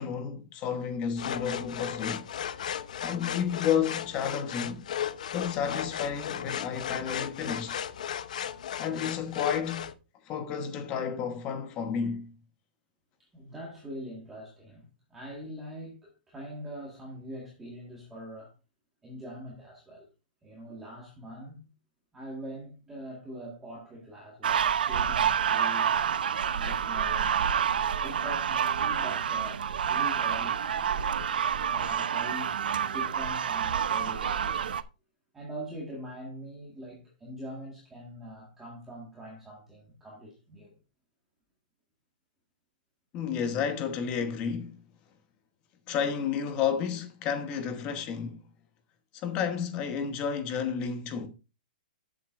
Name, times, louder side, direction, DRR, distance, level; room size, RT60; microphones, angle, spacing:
voice 1, 0.0-2.2 3.0-4.9 5.3-7.9 8.8-9.9 10.3-12.4 43.1-44.7 45.9-48.4 49.1-51.3, left 7 dB, 20° left, 1.1 m, -31 dB
sound 1, 1.2-9.9, left 9 dB, 55° left, 0.8 m, -35 dB
voice 2, 13.3-18.5 19.0-20.1 20.4-21.7 22.1-26.0 26.5-31.1 31.6-34.8 35.3-40.7, equal, 5° right, 1.6 m, -43 dB
sound 2, 24.4-34.8, right 8 dB, 80° right, 0.7 m, -28 dB
12.5 x 7.5 x 2.5 m
hypercardioid pair, 175°, 5 cm